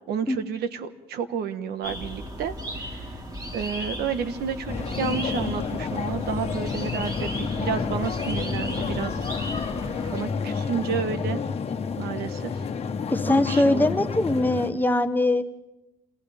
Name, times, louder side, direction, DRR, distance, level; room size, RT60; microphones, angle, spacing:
voice 1, 0.1-3.2 3.5-9.3 10.1-11.4 12.0-12.5 13.3-13.9, right 7 dB, 75° right, 10 dB, 1.5 m, -31 dB
sound 1, 1.8-10.2, equal, 25° right, 4.6 m, -36 dB
sound 2, 4.7-14.7, left 5 dB, 35° left, 1.4 m, -30 dB
voice 2, 13.1-15.4, left 1 dB, 10° left, 9 dB, 1.1 m, -22 dB
28.5 x 27.5 x 3.6 m, 0.97 s
cardioid pair, 110°, 17 cm